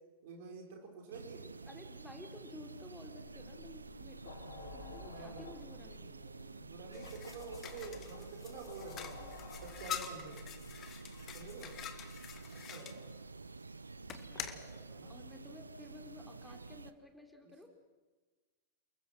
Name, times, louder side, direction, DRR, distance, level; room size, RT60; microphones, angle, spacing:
voice 1, 0.2-1.5 4.4-5.5 6.0-10.4 11.3-11.7 12.5-13.1 14.4-15.1, right 4 dB, 55° right, 3 dB, 5.4 m, -50 dB
sound 1, 1.1-16.9, right 3 dB, 80° right, 0.7 m, -50 dB
voice 2, 1.6-4.4 4.7-6.2 14.3-14.4 15.1-17.7, left 2 dB, 5° left, 4 dB, 3.7 m, -53 dB
sound 2, 3.9-12.4, left 4 dB, 70° left, 3.9 m, -54 dB
sound 3, 6.9-13.0 14.1-14.6, left 9 dB, 30° left, 2.0 m, -46 dB
29.5 x 22.0 x 6.2 m, 1.3 s
figure-of-eight pair, 90°, 0 cm